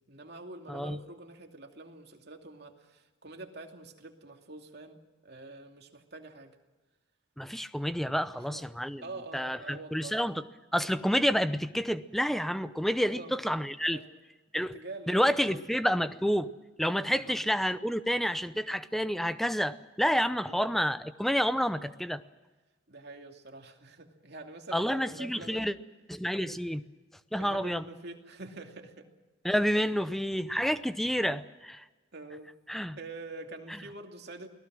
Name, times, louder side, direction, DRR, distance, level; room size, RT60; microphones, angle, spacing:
voice 1, 0.1-6.6 8.3-8.7 9.0-10.2 13.1-13.4 13.9-14.1 14.5-15.6 17.1-17.5 20.5-20.6 22.9-25.7 27.4-29.1 29.7-30.0 32.1-32.5 33.0-34.5, right 2 dB, 55° right, 3 dB, 2.6 m, -46 dB
voice 2, 7.4-9.0 9.3-10.4 10.7-14.0 14.5-14.7 15.1-16.5 16.8-22.2 24.7-25.7 26.1-26.8 27.3-27.8 29.4-31.8 32.7-33.0, equal, ahead, 12 dB, 0.7 m, -29 dB
29.0 x 19.0 x 6.3 m, 1.2 s
head